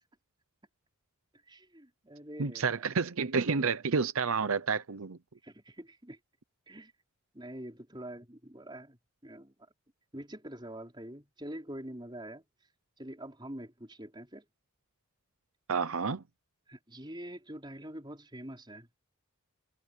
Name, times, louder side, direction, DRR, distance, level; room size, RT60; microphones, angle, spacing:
voice 1, 1.5-2.9 5.4-6.2 6.7-6.9 7.3-9.5 10.1-12.4 13.0-14.4 16.7-18.9, right 1 dB, 20° right, 4.6 m, -45 dB
voice 2, 2.4-5.2 15.7-16.2, right 5 dB, 70° right, 0.7 m, -30 dB
head